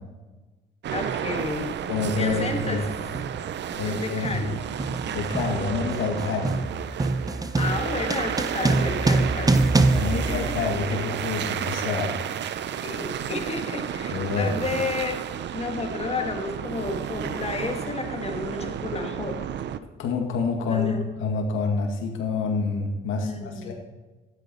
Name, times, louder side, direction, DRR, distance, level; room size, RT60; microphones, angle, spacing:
sound 1, 0.8-19.8, right 9 dB, 60° right, 0.6 m, -32 dB
voice 1, 0.9-1.8 2.1-2.9 3.8-4.6 7.5-10.5 10.9-11.1 12.8-15.2 15.5-19.4 20.7-21.0 23.2-23.7, left 4 dB, 30° left, 3 dB, 1.9 m, -32 dB
sound 2, 0.9-1.1 2.0-2.3 2.6-11.1, right 3 dB, 20° right, 0.7 m, -26 dB
voice 2, 1.9-2.8 3.7-4.5 5.1-6.6 9.9-12.2 14.1-14.6 20.0-23.7, left 4 dB, 85° left, 2 dB, 2.0 m, -27 dB
12.5 x 8.7 x 4.4 m, 1.2 s
cardioid pair, 90°, 20 cm